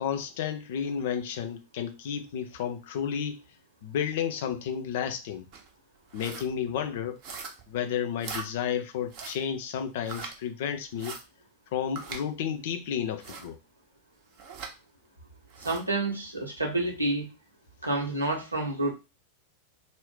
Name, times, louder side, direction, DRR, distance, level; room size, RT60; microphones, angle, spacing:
voice 1, 0.0-3.4 3.8-5.5 6.1-7.2 7.7-11.2 11.7-13.6, left 8 dB, 55° left, 0.4 m, -32 dB
sound 1, 5.5-5.7 6.1-6.5 7.2-7.7 8.2-8.5 9.1-9.4 10.0-10.3 11.0-11.2 12.0-12.2 13.2-13.5 14.4-14.7 15.5-15.8, right 5 dB, 45° right, 0.6 m, -40 dB
voice 2, 15.6-17.3 17.8-18.9, right 2 dB, 85° right, 0.8 m, -29 dB
2.5 x 2.0 x 3.6 m
figure-of-eight pair, 90°, 0 cm